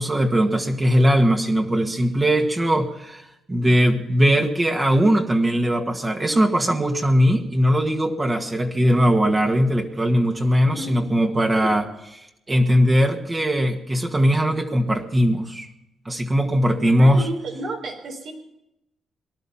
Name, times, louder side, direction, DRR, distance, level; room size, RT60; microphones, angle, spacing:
voice 1, 0.0-11.8 12.5-15.7 16.1-17.2, equal, 25° right, 3 dB, 1.9 m, -20 dB
voice 2, 10.7-11.0 11.6-11.7 16.9-18.3, right 2 dB, 70° right, 3 dB, 4.2 m, -32 dB
19.0 x 11.5 x 5.7 m, 0.85 s
cardioid pair, 70°, 0 cm